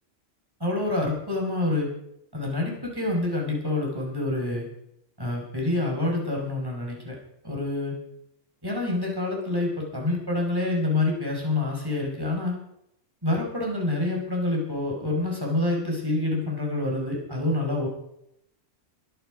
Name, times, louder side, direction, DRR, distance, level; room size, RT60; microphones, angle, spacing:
voice 1, 0.6-1.9 2.3-4.7 5.2-7.2 7.4-7.9 8.6-12.6 13.2-17.9, left 2 dB, 15° right, -1 dB, 5.4 m, -27 dB
23.0 x 11.5 x 5.1 m, 0.78 s
omnidirectional pair, 1.3 m